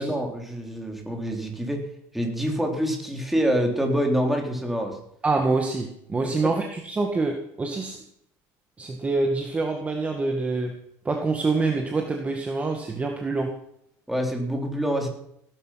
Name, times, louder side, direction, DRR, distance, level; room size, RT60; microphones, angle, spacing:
voice 1, 0.0-1.8 2.1-5.0 6.2-6.5 14.1-15.1, equal, ahead, 2 dB, 3.6 m, -26 dB
voice 2, 5.2-8.0 8.8-10.7 11.1-13.5, right 3 dB, 20° right, 3 dB, 1.9 m, -26 dB
17.5 x 11.0 x 5.9 m, 0.73 s
cardioid pair, 130°, 7 cm